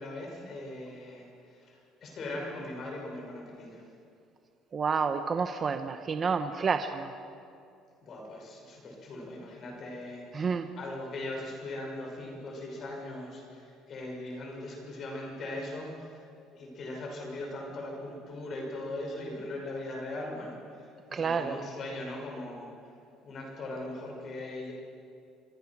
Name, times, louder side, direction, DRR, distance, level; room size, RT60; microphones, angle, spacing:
voice 1, 0.0-3.8 8.0-10.5 10.8-16.2 16.5-22.7 23.2-24.7, left 1 dB, 40° left, 0 dB, 5.8 m, -40 dB
voice 2, 4.7-7.1 10.3-10.7 21.1-21.6, right 5 dB, 30° right, 8 dB, 0.9 m, -29 dB
24.5 x 23.0 x 6.1 m, 2.4 s
cardioid pair, 150°, 0 cm